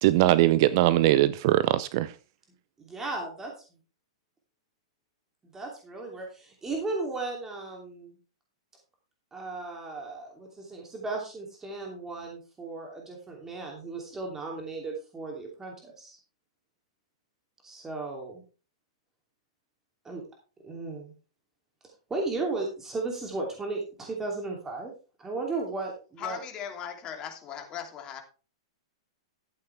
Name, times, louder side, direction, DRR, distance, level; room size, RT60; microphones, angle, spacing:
voice 1, 0.0-2.1, right 15 dB, 50° right, 0.6 m, -21 dB
voice 2, 2.8-3.5 5.5-8.2 9.3-16.2 17.6-18.4 20.0-20.2 20.6-21.1 22.1-24.9 25.2-26.4, right 3 dB, 15° right, 2.9 m, -35 dB
voice 3, 26.2-28.2, left 8 dB, 30° left, 2.9 m, -38 dB
12.5 x 8.5 x 3.4 m
hypercardioid pair, 110°, 3 cm